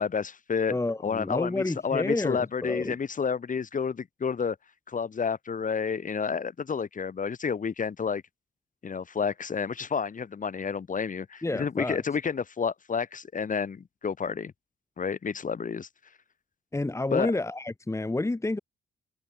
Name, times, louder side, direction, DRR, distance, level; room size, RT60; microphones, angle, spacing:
voice 1, 0.0-0.8 1.0-4.6 4.9-8.2 8.8-14.5 15.0-15.9 17.1-17.3, left 6 dB, 40° left, 4.4 m, -30 dB
voice 2, 0.7-3.0 11.4-12.0 16.7-18.6, left 2 dB, 15° left, 2.4 m, -29 dB
cardioid pair, 90°, 20 cm